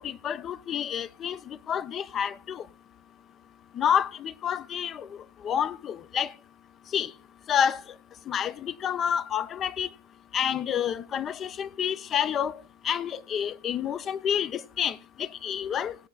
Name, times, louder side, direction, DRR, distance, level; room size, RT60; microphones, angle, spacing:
voice 1, 0.0-2.7 3.7-5.1 5.4-6.3 6.9-7.1 7.5-7.8 8.3-9.9 10.3-12.6 12.8-16.0, left 8 dB, 25° left, 0.4 m, -29 dB
19.0 x 8.0 x 2.3 m
figure-of-eight pair, 90°, 0 cm